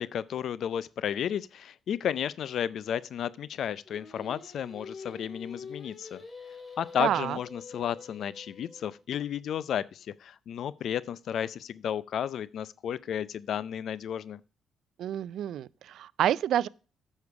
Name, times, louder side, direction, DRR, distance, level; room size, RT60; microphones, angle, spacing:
voice 1, 0.0-6.2 6.8-14.4, left 9 dB, 65° left, 0.4 m, -33 dB
Singing, 3.9-9.0, left 4 dB, 25° left, 2.7 m, -46 dB
voice 2, 7.0-7.4 15.0-16.7, right 11 dB, 75° right, 0.3 m, -28 dB
8.5 x 6.4 x 4.7 m
cardioid pair, 90°, 0 cm